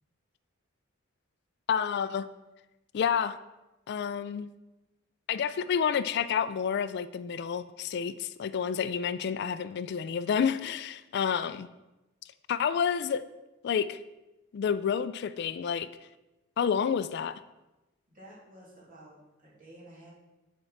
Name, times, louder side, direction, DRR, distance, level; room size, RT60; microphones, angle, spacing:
voice 1, 1.7-2.3 2.9-3.4 3.9-4.5 5.3-11.7 12.5-13.2 13.6-14.0 14.5-15.9 16.6-17.4, left 7 dB, 55° left, 14 dB, 0.3 m, -29 dB
voice 2, 18.1-20.1, right 1 dB, 45° right, -5 dB, 2.9 m, -52 dB
9.1 x 4.5 x 5.8 m, 1.0 s
head